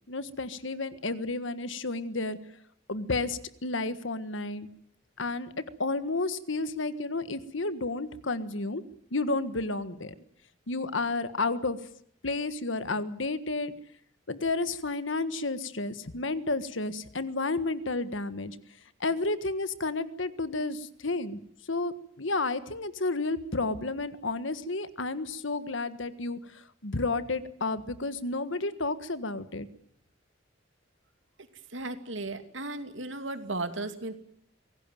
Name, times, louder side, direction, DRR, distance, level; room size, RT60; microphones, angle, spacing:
voice 1, 0.1-2.4 2.9-4.7 5.2-8.8 9.1-10.1 10.7-11.8 12.2-13.7 14.3-18.6 19.0-21.4 21.7-29.7, left 3 dB, 75° left, 13 dB, 1.6 m, -31 dB
voice 2, 31.7-34.1, right 2 dB, 75° right, 8 dB, 2.5 m, -35 dB
25.0 x 17.5 x 9.3 m, 0.67 s
head